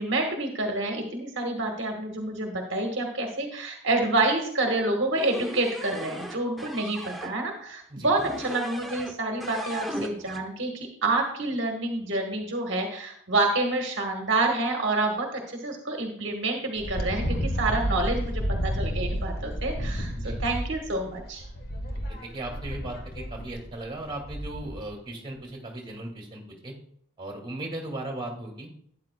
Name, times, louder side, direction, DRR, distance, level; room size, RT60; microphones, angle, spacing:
voice 1, 0.0-21.4, right 2 dB, 60° right, 2 dB, 1.3 m, -28 dB
sound 1, 5.2-7.3 8.2-9.1 9.4-10.4, equal, ahead, 0.6 m, -37 dB
Wind, 16.8-24.9, equal, 45° left, 1.3 m, -31 dB
voice 2, 22.1-26.7 27.2-28.7, right 1 dB, 20° right, 0 dB, 2.2 m, -37 dB
12.5 x 9.4 x 2.2 m, 0.65 s
head